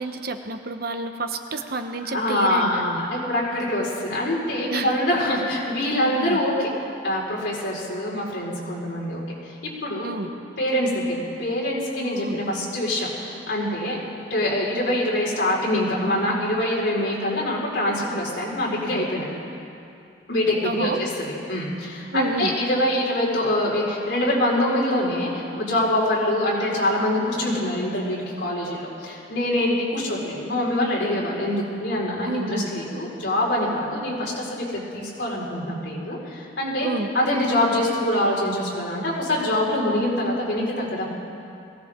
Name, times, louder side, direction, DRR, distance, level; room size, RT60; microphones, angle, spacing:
voice 1, 0.0-3.1 4.7-5.0 6.2-6.4 10.0-10.3 12.0-12.4 20.6-21.0 22.1-22.5 32.3-32.7 36.8-37.1, right 2 dB, 60° right, 6 dB, 1.0 m, -29 dB
voice 2, 2.1-6.7 7.0-9.5 9.8-10.1 10.6-14.0 14.3-19.3 20.3-36.9 37.1-41.0, left 1 dB, 85° left, -6 dB, 4.8 m, -24 dB
21.5 x 17.0 x 3.7 m, 2.6 s
head